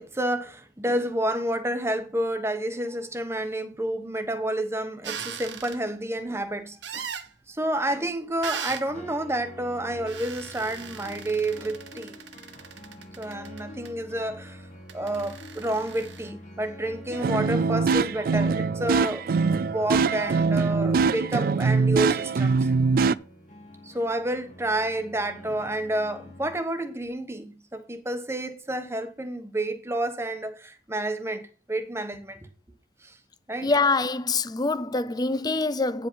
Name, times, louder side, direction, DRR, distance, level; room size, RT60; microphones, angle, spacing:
voice 1, 0.0-7.1 7.5-12.1 13.2-14.6 14.9-22.5 23.8-32.4 33.0-33.2 33.5-33.7, right 1 dB, 15° right, 1.1 m, -30 dB
sound 1, 5.0-5.8 6.8-7.3 8.4-8.9 10.1-13.9 14.9-16.3, right 7 dB, 90° right, 0.9 m, -38 dB
sound 2, 8.9-26.6, left 1 dB, 45° left, 1.3 m, -47 dB
sound 3, 17.1-23.1, right 4 dB, 55° right, 0.3 m, -23 dB
voice 2, 33.6-36.1, left 3 dB, 25° left, 0.5 m, -25 dB
9.5 x 5.0 x 5.6 m
head